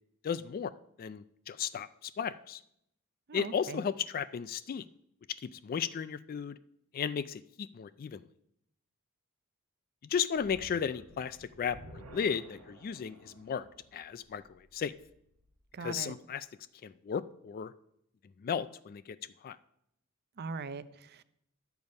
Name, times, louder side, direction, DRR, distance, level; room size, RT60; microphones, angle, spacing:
voice 1, 0.2-0.7 1.0-2.6 3.3-4.9 5.4-6.6 6.9-8.2 10.0-14.9 15.8-16.5 16.8-17.7 18.4-19.2 19.4-19.6, left 7 dB, 40° left, 15 dB, 0.3 m, -35 dB
voice 2, 3.3-3.8 15.7-16.1 20.4-21.2, right 4 dB, 45° right, 15 dB, 0.5 m, -41 dB
sound 1, 10.3-15.6, right 1 dB, 80° right, 1.3 m, -54 dB
11.0 x 7.0 x 5.3 m, 0.75 s
head